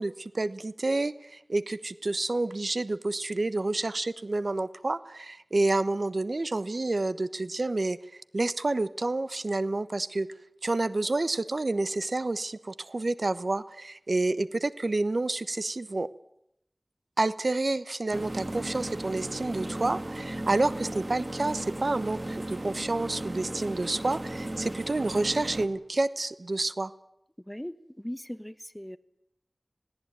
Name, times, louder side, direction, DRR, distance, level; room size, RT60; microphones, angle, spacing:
voice 1, 0.0-10.3 10.6-16.1 17.2-26.9, right 2 dB, 70° right, 15 dB, 1.1 m, -29 dB
sound 1, 18.1-25.7, right 1 dB, 40° right, 2.5 m, -36 dB
voice 2, 27.5-29.0, equal, 10° left, 13 dB, 1.3 m, -39 dB
20.5 x 18.0 x 8.9 m, 0.78 s
wide cardioid pair, 50°, 0 cm